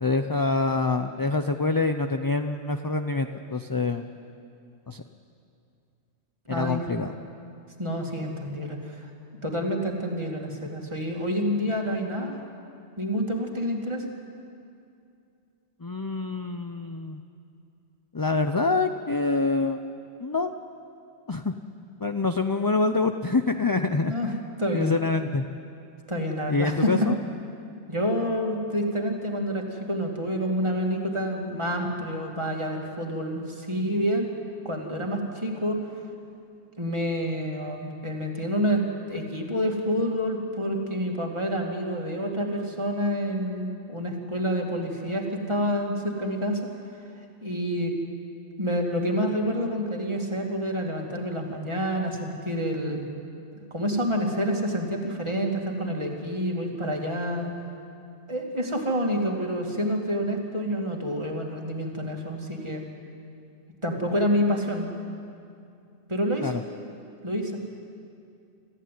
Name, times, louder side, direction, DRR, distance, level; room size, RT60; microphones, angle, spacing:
voice 1, 0.0-4.1 4.9-5.0 6.5-7.1 15.8-17.2 18.1-19.8 20.2-20.5 21.3-21.5 22.0-24.1 24.7-25.5 26.5-27.1 66.4-66.6, left 3 dB, 25° left, 7 dB, 0.5 m, -26 dB
voice 2, 6.5-6.8 7.8-9.1 9.4-12.4 13.0-14.0 24.0-24.3 24.6-25.0 26.1-27.1 27.9-34.3 34.6-35.8 36.8-38.8 39.1-46.6 47.4-47.9 48.6-53.0 53.7-57.5 58.3-62.8 63.8-64.9 66.1-66.5 67.2-67.6, equal, 25° right, 0 dB, 2.6 m, -28 dB
25.5 x 14.5 x 9.4 m, 2.5 s
omnidirectional pair, 1.2 m